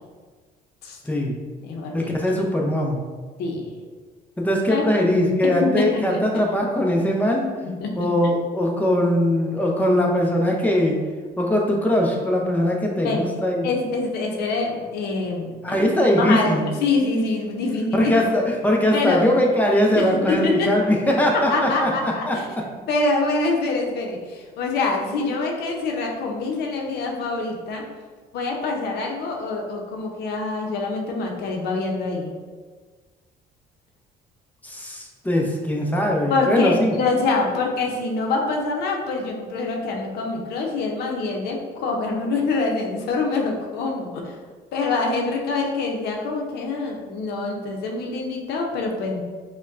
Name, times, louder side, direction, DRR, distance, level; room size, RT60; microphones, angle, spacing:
voice 1, 1.0-1.4 1.9-3.0 4.4-7.5 8.0-11.0 11.4-13.7 15.6-16.7 17.9-22.4 34.6-37.0, left 1 dB, 10° left, 0 dB, 0.6 m, -21 dB
voice 2, 1.6-2.1 3.4-3.7 4.7-4.8 5.6-6.2 7.8-8.1 13.0-13.3 13.6-15.8 16.2-18.1 18.9-19.2 20.0-20.7 21.5-22.5 22.9-27.8 28.3-32.3 36.3-44.3 44.7-49.2, left 3 dB, 75° left, 0 dB, 0.7 m, -25 dB
5.1 x 2.2 x 2.5 m, 1.4 s
cardioid pair, 110°, 17 cm